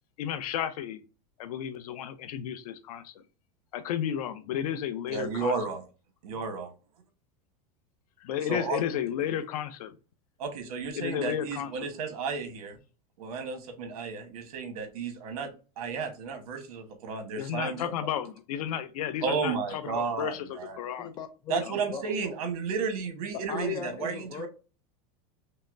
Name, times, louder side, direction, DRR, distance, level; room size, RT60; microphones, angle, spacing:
voice 1, 0.2-1.0 1.4-3.2 3.7-5.6 8.2-10.0 11.0-11.9 17.4-21.1 21.6-21.8, left 10 dB, 85° left, 11 dB, 0.6 m, -33 dB
voice 2, 5.1-5.8 6.2-6.7 8.5-8.8 10.4-12.8 13.2-15.5 15.8-17.8 19.2-20.8 21.5-24.5, right 5 dB, 75° right, 6 dB, 1.2 m, -33 dB
voice 3, 21.0-21.6 21.9-22.2 23.5-24.5, left 7 dB, 20° left, 8 dB, 0.5 m, -37 dB
5.5 x 2.0 x 2.6 m, 0.33 s
supercardioid pair, 150°, 19 cm